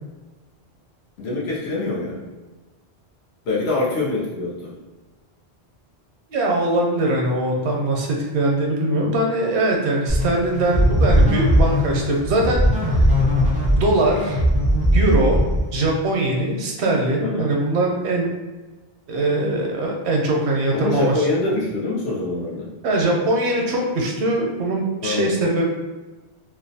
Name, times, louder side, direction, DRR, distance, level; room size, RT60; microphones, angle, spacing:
voice 1, 1.2-2.2 3.5-4.7 17.2-17.5 20.7-22.7 25.0-25.3, left 2 dB, 85° left, -6 dB, 0.9 m, -24 dB
voice 2, 6.3-12.6 13.8-14.4 14.9-15.4 15.7-18.3 19.1-21.2 22.8-25.7, right 2 dB, 85° right, 0 dB, 0.8 m, -21 dB
sound 1, 10.1-15.9, equal, 10° right, 0.4 m, -19 dB
2.5 x 2.0 x 2.6 m, 1.2 s
omnidirectional pair, 1.1 m